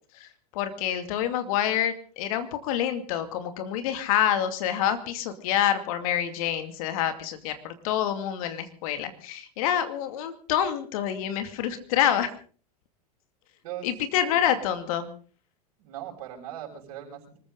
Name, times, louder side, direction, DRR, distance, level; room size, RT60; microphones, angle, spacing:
voice 1, 0.1-12.3 13.8-15.1, left 10 dB, 60° left, 9 dB, 2.4 m, -27 dB
voice 2, 15.8-17.4, right 11 dB, 65° right, 1 dB, 6.5 m, -39 dB
25.0 x 14.5 x 3.8 m, 0.41 s
hypercardioid pair, 90°, 21 cm